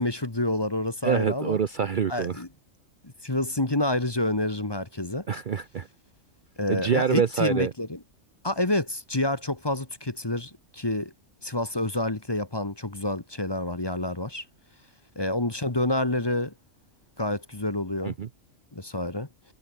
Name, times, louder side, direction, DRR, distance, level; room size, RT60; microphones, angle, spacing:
voice 1, 0.0-1.6 2.1-2.5 3.0-5.3 6.6-8.0 8.4-11.1 11.4-14.4 15.1-16.5 17.2-18.1 18.7-19.3, left 1 dB, 20° left, 1.3 m, -28 dB
voice 2, 1.0-2.4 5.3-5.9 6.7-7.7 18.0-18.3, right 7 dB, 45° right, 0.8 m, -26 dB
omnidirectional pair, 1.3 m